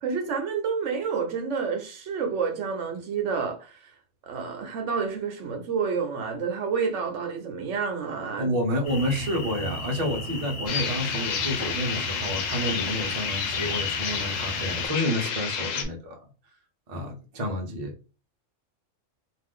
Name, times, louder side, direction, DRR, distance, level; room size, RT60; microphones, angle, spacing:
voice 1, 0.0-3.7 4.2-8.5, right 6 dB, 70° right, 1.0 m, -29 dB
voice 2, 8.4-16.2 16.9-17.9, equal, 40° right, 0.7 m, -29 dB
sound 1, 8.8-14.9, equal, 55° left, 0.9 m, -35 dB
sound 2, 10.7-15.8, left 6 dB, 90° left, 1.0 m, -30 dB
2.5 x 2.4 x 3.5 m
omnidirectional pair, 1.3 m